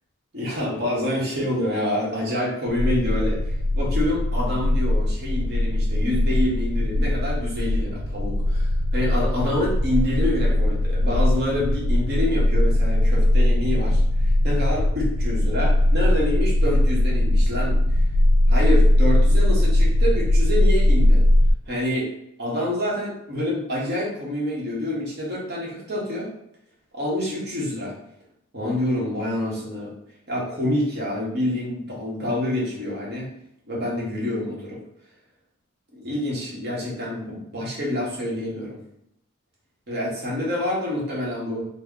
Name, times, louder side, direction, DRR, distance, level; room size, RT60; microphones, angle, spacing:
voice 1, 0.3-17.8 18.5-21.2 21.7-22.1 22.4-26.3 26.9-28.0 28.5-29.9 30.3-33.3 33.7-34.8 35.9-38.8 39.9-41.7, left 1 dB, 50° right, -5 dB, 1.2 m, -27 dB
sound 1, 2.7-21.5, left 1 dB, 60° left, 0.3 m, -20 dB
3.1 x 2.1 x 3.7 m, 0.78 s
head